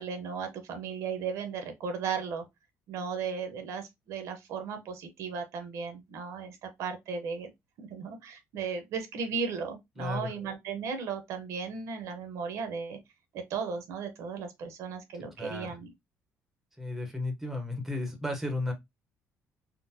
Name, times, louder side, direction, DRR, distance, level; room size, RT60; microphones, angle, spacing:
voice 1, 0.0-2.4 2.9-7.5 7.8-13.0 13.3-15.9, right 5 dB, 70° right, 0.8 m, -36 dB
voice 2, 10.0-10.3 15.4-15.8 16.8-18.7, left 2 dB, 5° right, 0.7 m, -34 dB
3.7 x 2.1 x 2.6 m
cardioid pair, 155°, 5 cm